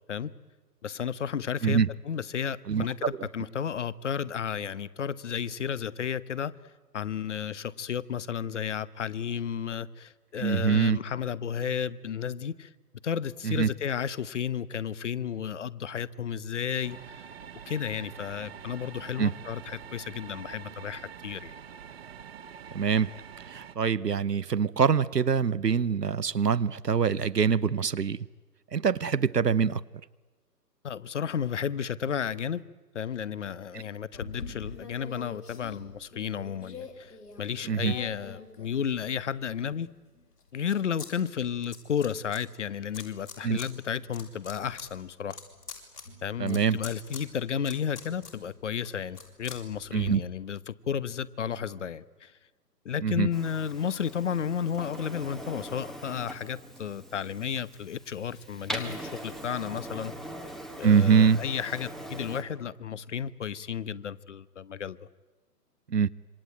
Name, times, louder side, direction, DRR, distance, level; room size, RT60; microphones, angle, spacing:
voice 1, 0.8-1.8 2.0-6.5 6.9-12.7 13.0-17.3 17.7-21.6 30.8-32.6 32.9-39.9 40.5-45.4 46.2-52.3 52.8-60.1 60.8-65.0, left 8 dB, 45° left, 1.1 m, -33 dB
voice 2, 2.7-3.2 10.4-11.0 13.4-13.7 19.2-19.3 22.7-23.1 23.5-28.2 28.7-29.8 33.7-33.8 37.7-37.9 43.4-43.6 46.4-46.8 49.9-50.2 53.0-53.3 60.8-61.4 65.9-66.1, right 6 dB, 75° right, 0.9 m, -24 dB
sound 1, 16.8-23.8, right 7 dB, 40° right, 1.5 m, -45 dB
sound 2, 34.1-39.2 39.7-41.1 41.3-42.4 42.9-43.7 44.0-50.1, left 4 dB, 70° left, 6.5 m, -45 dB
Printer, 53.3-62.4, right 1 dB, ahead, 1.1 m, -42 dB
26.5 x 24.5 x 9.0 m
figure-of-eight pair, 130°, 48 cm